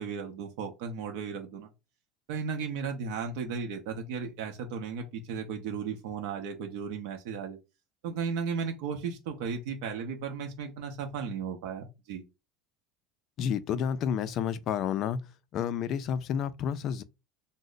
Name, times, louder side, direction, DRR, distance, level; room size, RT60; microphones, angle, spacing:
voice 1, 0.0-1.7 2.3-7.6 8.0-12.2, right 6 dB, 65° right, 0.6 m, -35 dB
voice 2, 13.4-15.2 15.5-17.0, left 8 dB, 35° left, 0.3 m, -30 dB
3.1 x 2.0 x 3.8 m
cardioid pair, 165°, 0 cm